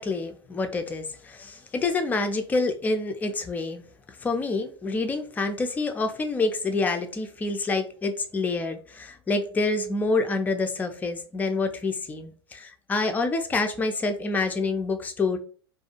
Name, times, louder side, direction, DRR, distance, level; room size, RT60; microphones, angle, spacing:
voice 1, 0.0-3.8 4.2-15.4, left 3 dB, 10° left, 6 dB, 0.3 m, -27 dB
2.4 x 2.3 x 2.7 m, 0.42 s
figure-of-eight pair, 90°, 14 cm